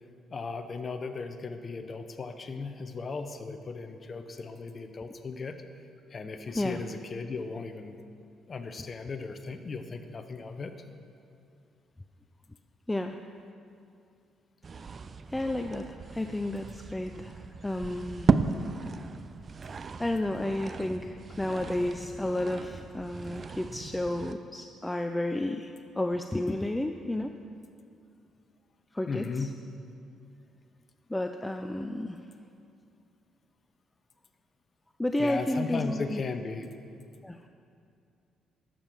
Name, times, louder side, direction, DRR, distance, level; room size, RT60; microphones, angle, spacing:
voice 1, 0.3-5.6 6.1-8.0 8.5-10.7 29.1-29.6 35.2-36.7, left 4 dB, 40° left, 8 dB, 0.8 m, -36 dB
voice 2, 12.9-13.2 15.3-18.3 20.0-27.4 28.9-29.5 31.1-32.2 35.0-36.2 37.2-37.4, left 1 dB, 10° left, 6 dB, 0.5 m, -32 dB
sound 1, 14.6-24.3, right 5 dB, 40° right, 0.5 m, -34 dB
12.0 x 7.5 x 6.3 m, 2.4 s
cardioid pair, 90°, 0 cm